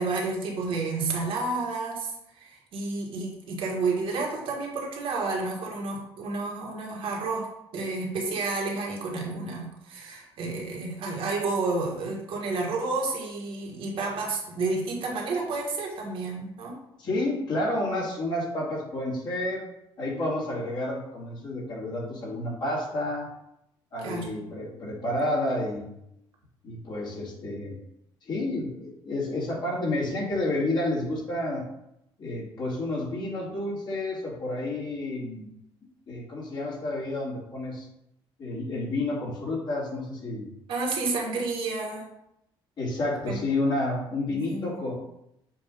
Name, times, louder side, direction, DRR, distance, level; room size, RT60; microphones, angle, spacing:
voice 1, 0.0-7.5 7.7-16.8 24.0-24.3 40.7-42.1 43.2-43.4 44.3-44.7, right 3 dB, 65° right, -1 dB, 1.6 m, -30 dB
voice 2, 17.0-19.6 20.0-23.3 23.9-26.0 26.6-27.8 28.2-31.6 32.2-35.5 36.1-37.9 38.4-40.5 42.8-44.9, left 1 dB, 50° left, -6 dB, 2.4 m, -30 dB
7.2 x 2.7 x 5.0 m, 0.82 s
cardioid pair, 130°, 10 cm